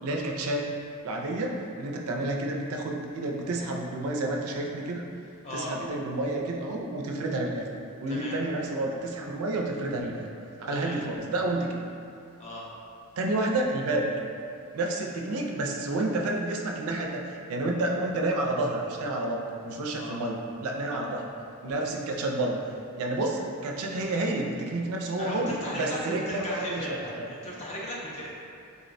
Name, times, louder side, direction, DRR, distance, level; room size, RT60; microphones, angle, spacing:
voice 1, 0.0-0.7 1.0-5.1 5.5-7.6 8.0-10.3 10.6-11.9 13.2-14.1 14.7-21.2 21.6-22.6 23.0-27.3, right 2 dB, 70° right, 0 dB, 0.4 m, -30 dB
voice 2, 25.2-28.3, equal, 30° left, -5 dB, 0.4 m, -36 dB
3.7 x 2.0 x 2.5 m, 2.5 s
head